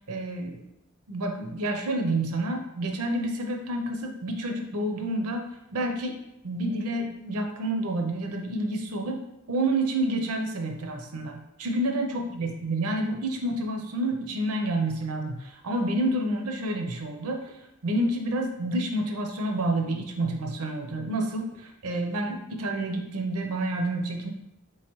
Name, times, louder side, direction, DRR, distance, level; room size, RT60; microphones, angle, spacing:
voice 1, 0.1-0.6 1.1-5.4 5.7-6.2 6.4-9.2 9.5-17.4 17.8-21.5 21.8-24.3, right 1 dB, 85° right, 3 dB, 0.6 m, -29 dB
3.8 x 3.1 x 3.0 m, 0.86 s
head